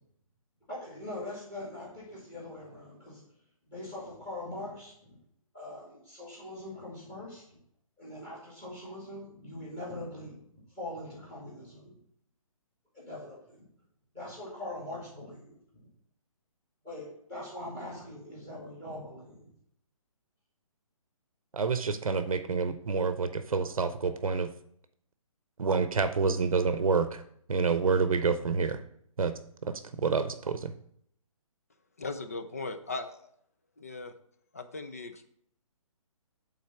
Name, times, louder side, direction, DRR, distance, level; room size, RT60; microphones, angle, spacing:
voice 1, 0.7-3.2 3.7-5.2 5.5-7.6 8.0-12.0 12.9-13.7 14.1-15.6 16.8-19.5, left 1 dB, 10° left, -5 dB, 2.1 m, -42 dB
voice 2, 21.5-24.5 25.6-27.2 27.5-28.8 29.2-30.7, right 5 dB, 70° right, 10 dB, 0.7 m, -28 dB
voice 3, 32.0-33.3 33.8-34.1 34.5-35.3, left 3 dB, 25° left, 8 dB, 0.5 m, -38 dB
8.4 x 3.9 x 5.8 m, 0.69 s
hypercardioid pair, 180°, 18 cm